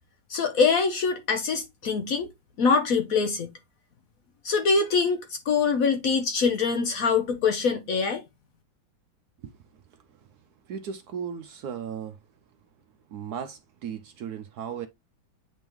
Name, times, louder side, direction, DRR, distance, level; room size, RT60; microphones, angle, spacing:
voice 1, 0.3-2.3 2.6-3.5 4.4-8.2, left 5 dB, 60° left, 0.9 m, -24 dB
voice 2, 10.7-12.2 13.1-14.9, right 7 dB, 70° right, 0.9 m, -36 dB
8.7 x 3.6 x 3.0 m
omnidirectional pair, 2.1 m